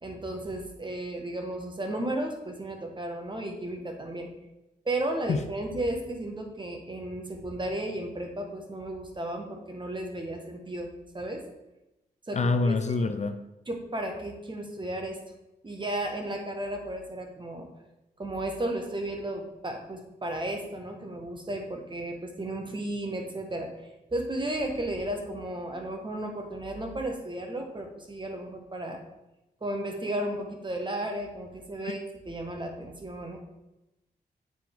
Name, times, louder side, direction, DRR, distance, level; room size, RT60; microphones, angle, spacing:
voice 1, 0.0-4.3 4.8-10.9 11.1-11.4 12.3-13.1 13.7-15.2 15.6-17.7 18.2-23.7 24.1-29.0 29.6-33.4, right 1 dB, 30° right, 3 dB, 1.5 m, -34 dB
voice 2, 12.3-13.4 31.8-32.0, left 3 dB, 45° left, 9 dB, 0.5 m, -26 dB
7.7 x 4.5 x 3.6 m, 0.95 s
cardioid pair, 55°, 16 cm